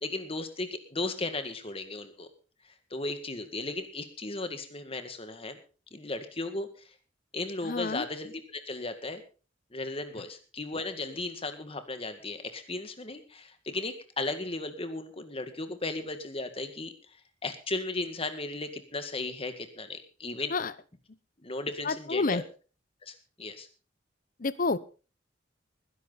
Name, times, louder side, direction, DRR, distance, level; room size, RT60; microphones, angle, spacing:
voice 1, 0.0-2.3 2.9-5.6 5.9-6.7 7.3-9.2 9.7-16.9 17.4-20.5 21.4-22.4 23.0-23.7, left 2 dB, 30° left, 8 dB, 2.0 m, -35 dB
voice 2, 7.6-8.1 20.5-20.7 21.8-22.4 24.4-24.8, left 3 dB, 45° left, 17 dB, 0.8 m, -29 dB
20.0 x 11.0 x 4.1 m, 0.37 s
head